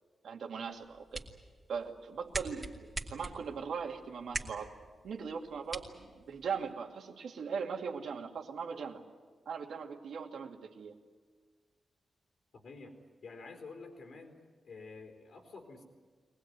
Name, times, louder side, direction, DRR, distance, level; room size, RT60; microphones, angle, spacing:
voice 1, 0.2-1.3 1.7-4.7 5.0-9.0 9.5-10.9, right 6 dB, 75° right, 2 dB, 2.4 m, -40 dB
sound 1, 0.7-6.7, right 2 dB, 20° right, 2.6 m, -44 dB
voice 2, 12.5-14.4 14.6-15.8, left 3 dB, 65° left, 1 dB, 3.5 m, -49 dB
23.5 x 19.5 x 9.5 m, 1.5 s
wide cardioid pair, 130°, 0 cm